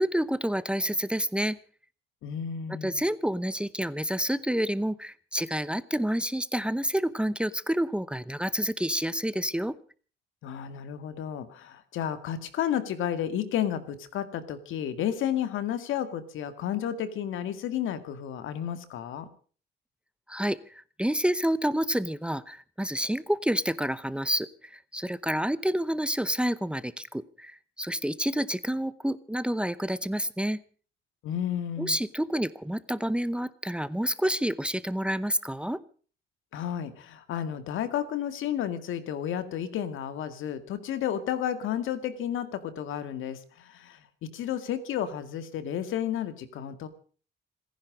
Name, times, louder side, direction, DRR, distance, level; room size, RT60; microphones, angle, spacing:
voice 1, 0.0-1.6 2.7-9.7 20.3-30.6 31.8-35.8, equal, 5° right, 17 dB, 0.8 m, -29 dB
voice 2, 2.2-3.0 10.4-19.3 31.2-32.0 36.5-44.0 44.3-46.9, left 10 dB, 85° left, 11 dB, 2.1 m, -32 dB
27.0 x 10.5 x 5.1 m, 0.41 s
cardioid pair, 90°, 20 cm